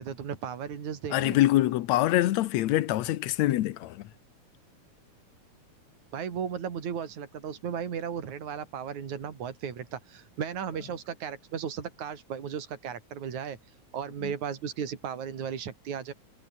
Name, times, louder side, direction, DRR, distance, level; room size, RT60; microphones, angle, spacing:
voice 1, 0.0-1.4 6.1-13.6 13.9-16.1, right 7 dB, 75° right, 4.1 m, -35 dB
voice 2, 1.1-4.1 14.2-14.3, left 15 dB, 75° left, 2.1 m, -25 dB
omnidirectional pair, 3.4 m